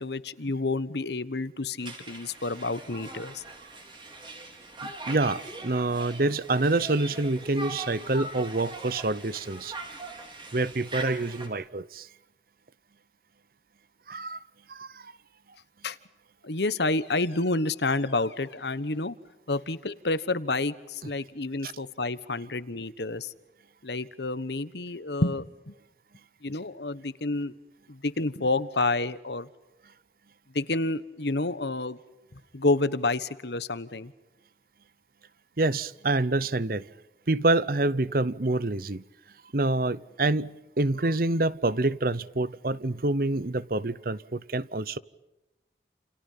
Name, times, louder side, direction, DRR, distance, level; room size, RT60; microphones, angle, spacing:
voice 1, 0.0-3.4 15.8-16.0 16.4-19.1 19.5-23.3 23.8-25.7 26.4-27.5 27.9-29.5 30.5-32.0 32.5-34.1, left 2 dB, 70° left, 1.3 m, -29 dB
Conversation, 1.8-11.5, right 2 dB, 25° right, 4.6 m, -41 dB
voice 2, 4.8-9.7 10.5-12.1 14.1-14.4 14.7-15.1 21.6-21.7 35.6-36.9 37.3-39.0 39.5-45.0, right 2 dB, 50° right, 0.8 m, -27 dB
30.0 x 29.0 x 5.7 m
head